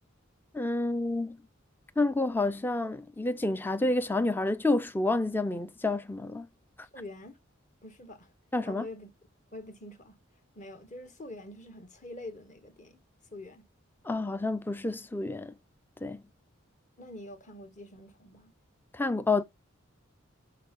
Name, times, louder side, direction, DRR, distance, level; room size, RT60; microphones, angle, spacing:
voice 1, 0.5-1.4 2.0-6.5 8.5-8.9 14.0-15.5 16.0-16.2 18.9-19.4, left 2 dB, 10° left, 0.4 m, -29 dB
voice 2, 6.9-7.4 7.8-8.3 8.6-9.1 9.5-10.2 10.5-13.0 13.3-13.7 17.0-18.5, left 1 dB, 40° left, 1.3 m, -45 dB
6.6 x 4.4 x 6.7 m
head